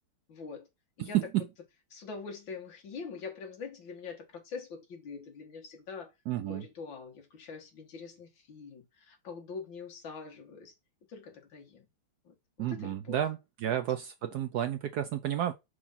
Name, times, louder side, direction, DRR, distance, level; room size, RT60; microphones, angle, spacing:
voice 1, 0.3-0.7 1.0-1.2 1.9-6.1 6.5-10.7 11.1-11.9 12.2-13.2 13.6-13.8, left 5 dB, 65° left, 2.2 m, -44 dB
voice 2, 1.0-1.4 6.3-6.6 12.6-15.5, right 11 dB, 85° right, 0.8 m, -31 dB
5.0 x 4.6 x 5.5 m
omnidirectional pair, 2.3 m